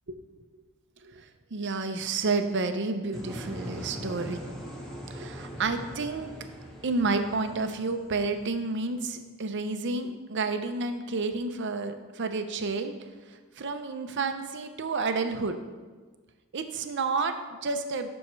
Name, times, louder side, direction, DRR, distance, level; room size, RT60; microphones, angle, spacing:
voice 1, 1.0-4.4 5.1-6.3 6.8-12.9 13.6-15.6 16.5-18.1, right 3 dB, 55° right, 8 dB, 0.6 m, -30 dB
sound 1, 3.1-9.0, equal, ahead, 1.8 m, -41 dB
11.5 x 6.3 x 3.2 m, 1.4 s
head